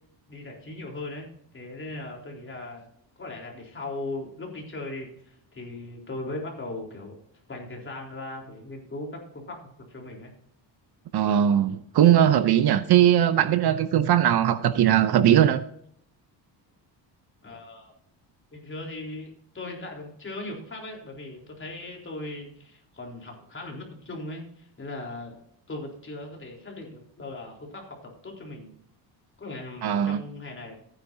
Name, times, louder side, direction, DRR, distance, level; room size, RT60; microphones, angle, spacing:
voice 1, 0.3-2.9 3.2-7.2 7.5-9.6 9.9-10.3 17.4-17.9 18.5-25.3 25.7-28.7 29.4-30.8, left 2 dB, 25° left, 3.9 m, -38 dB
voice 2, 11.1-15.6 29.8-30.2, right 10 dB, 60° right, 0.8 m, -20 dB
15.0 x 9.8 x 2.8 m
cardioid pair, 120°, 44 cm